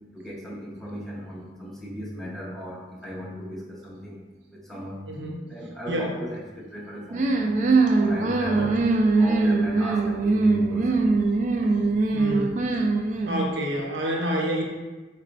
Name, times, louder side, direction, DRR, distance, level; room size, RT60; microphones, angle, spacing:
voice 1, 0.1-4.2 4.5-5.0 5.4-7.6 8.0-8.8 9.2-11.1, equal, ahead, -6 dB, 0.7 m, -37 dB
voice 2, 5.1-5.4 5.9-6.1 8.6-8.7 12.1-12.5 13.2-14.6, equal, 70° right, 0 dB, 0.7 m, -28 dB
sound 1, 7.1-13.5, right 3 dB, 40° right, 0.3 m, -22 dB
4.1 x 2.2 x 3.9 m, 1.2 s
head